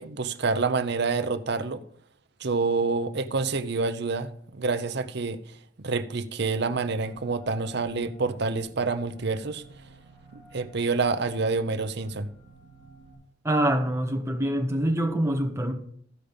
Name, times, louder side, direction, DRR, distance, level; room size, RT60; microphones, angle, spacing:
voice 1, 0.0-1.8 2.4-5.4 5.8-9.6 10.3-12.3, right 4 dB, 60° right, 0.8 m, -27 dB
sound 1, 6.6-13.2, right 2 dB, 75° left, 5.5 m, -52 dB
voice 2, 13.4-15.7, right 1 dB, 15° right, 1.4 m, -25 dB
14.0 x 5.2 x 5.2 m
head